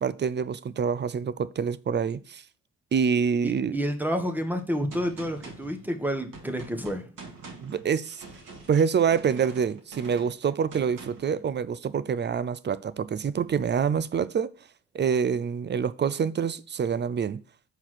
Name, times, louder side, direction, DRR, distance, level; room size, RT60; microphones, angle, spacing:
voice 1, 0.0-2.4 2.9-3.8 7.6-8.2 8.7-14.5 14.9-17.4, right 6 dB, 30° right, 0.5 m, -26 dB
voice 2, 3.4-7.1, equal, 5° right, 1.3 m, -29 dB
Gunshot gunfire, 4.9-11.4, right 3 dB, 55° right, 2.1 m, -45 dB
5.9 x 4.4 x 6.2 m
supercardioid pair, 70°, 38 cm